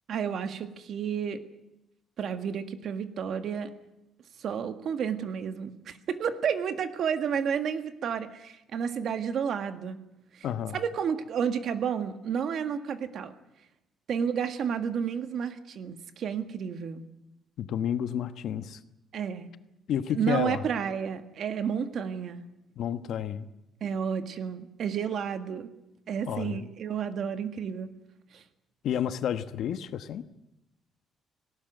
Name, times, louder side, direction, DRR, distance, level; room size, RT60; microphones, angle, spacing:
voice 1, 0.1-1.4 2.2-3.7 4.4-10.0 10.3-10.5 10.7-13.3 14.1-17.0 19.1-19.5 20.1-22.4 23.8-25.7 26.1-27.9 28.3-28.4, right 7 dB, 50° right, 9 dB, 1.7 m, -31 dB
voice 2, 10.4-10.8 17.6-18.8 19.9-20.7 22.8-23.5 26.3-26.7 28.8-30.2, left 9 dB, 60° left, 11 dB, 1.1 m, -30 dB
18.5 x 18.0 x 9.3 m, 0.90 s
cardioid pair, 155°, 0 cm